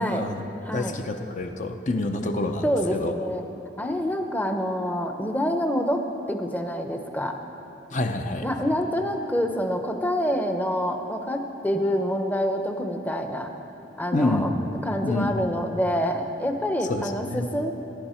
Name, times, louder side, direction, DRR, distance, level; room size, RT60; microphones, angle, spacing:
voice 1, 0.0-2.6 2.9-3.1 7.9-8.4 14.1-14.5 15.0-15.4 16.9-17.5, left 2 dB, 45° left, 5 dB, 0.7 m, -27 dB
voice 2, 0.6-1.0 2.6-3.4 3.8-7.4 8.4-13.5 14.0-17.7, equal, 10° left, 5 dB, 0.8 m, -27 dB
22.0 x 9.7 x 4.4 m, 2.9 s
head